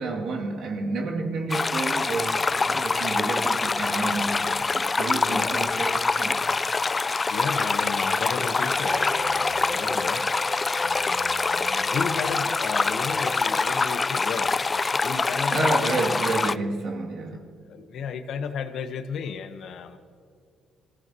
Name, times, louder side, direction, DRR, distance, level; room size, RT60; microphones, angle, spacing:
voice 1, 0.0-6.6 15.5-17.7, right 3 dB, 70° right, 2.5 m, -30 dB
sound 1, 1.5-16.6, left 4 dB, 30° left, 0.4 m, -25 dB
voice 2, 4.0-4.6 5.0-5.5 7.3-10.3 10.8-16.3 17.7-20.0, left 6 dB, 70° left, 1.1 m, -34 dB
sound 2, 8.8-16.1, equal, 5° left, 4.5 m, -38 dB
25.5 x 15.5 x 3.0 m
cardioid pair, 90°, 0 cm